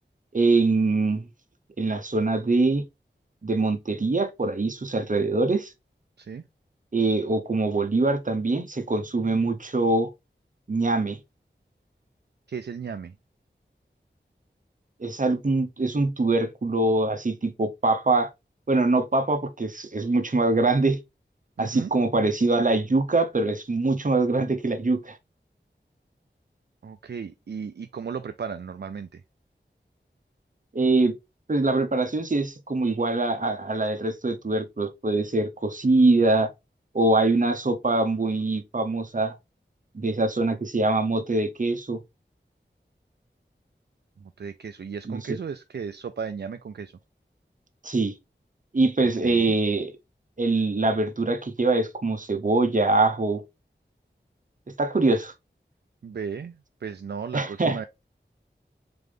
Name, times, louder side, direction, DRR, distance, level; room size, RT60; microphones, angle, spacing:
voice 1, 0.3-1.3 1.8-2.8 3.4-5.7 6.9-10.1 10.7-11.2 15.0-18.3 18.7-21.0 21.6-25.2 30.7-31.1 31.5-36.5 36.9-39.3 39.9-42.0 45.0-45.2 47.8-48.1 48.7-49.9 50.4-53.4 54.8-55.3 57.3-57.8, right 2 dB, 45° right, 0.8 m, -23 dB
voice 2, 12.5-13.1 21.6-21.9 26.8-29.2 44.2-46.9 49.2-49.6 56.0-57.8, right 6 dB, 60° right, 0.4 m, -35 dB
3.8 x 3.4 x 3.4 m
wide cardioid pair, 50°, 19 cm